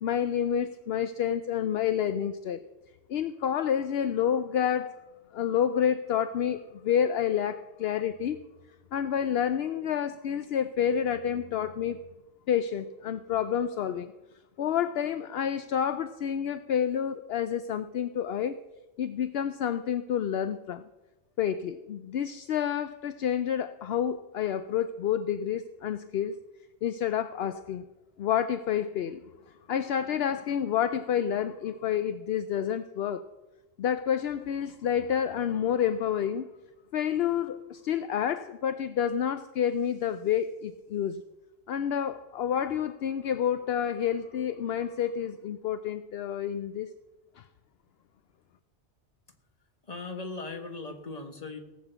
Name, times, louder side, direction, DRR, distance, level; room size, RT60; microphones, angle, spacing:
voice 1, 0.0-2.6 3.1-5.0 5.3-8.4 8.9-12.0 12.5-14.1 14.6-18.6 19.0-20.8 21.4-26.4 26.8-27.8 28.2-29.2 29.7-33.2 33.8-36.5 36.9-41.2 41.7-46.9 47.4-47.5, left 9 dB, 70° left, 11 dB, 0.8 m, -29 dB
voice 2, 49.8-51.6, left 3 dB, 35° left, 5 dB, 1.6 m, -38 dB
18.0 x 6.7 x 8.0 m, 1.1 s
omnidirectional pair, 1.1 m